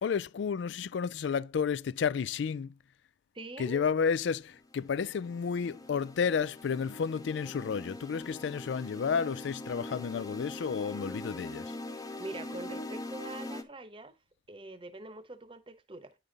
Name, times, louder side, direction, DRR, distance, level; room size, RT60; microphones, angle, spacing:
voice 1, 0.0-2.8 3.6-11.7, left 6 dB, 70° left, 0.3 m, -31 dB
voice 2, 3.3-3.8 11.9-14.2 14.5-16.2, right 2 dB, 25° right, 0.9 m, -44 dB
sound 1, 4.5-13.6, left 1 dB, 20° left, 0.7 m, -43 dB
9.6 x 5.2 x 3.9 m
head